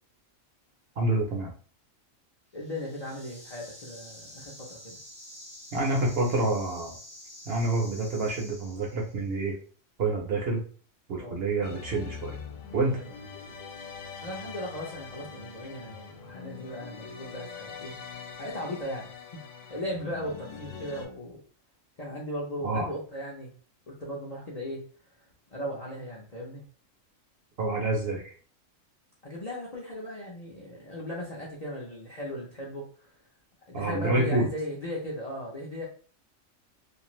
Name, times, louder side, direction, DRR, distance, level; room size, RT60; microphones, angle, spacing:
voice 1, 1.0-1.5 5.7-7.0 7.5-9.5 10.0-10.6 11.1-12.4 12.7-13.0 22.6-22.9 27.6-28.3 33.7-34.5, right 2 dB, 60° right, 0 dB, 0.8 m, -27 dB
voice 2, 2.5-5.0 11.2-11.4 12.9-13.0 14.2-18.0 18.4-21.4 22.0-23.5 23.9-24.8 25.5-26.6 29.2-33.1 33.7-35.8, equal, 45° left, -3 dB, 0.5 m, -37 dB
sound 1, 2.5-9.3, left 1 dB, 10° right, 0.4 m, -48 dB
sound 2, 11.6-21.0, left 6 dB, 70° left, 0.9 m, -43 dB
2.5 x 2.4 x 3.0 m, 0.41 s
omnidirectional pair, 1.4 m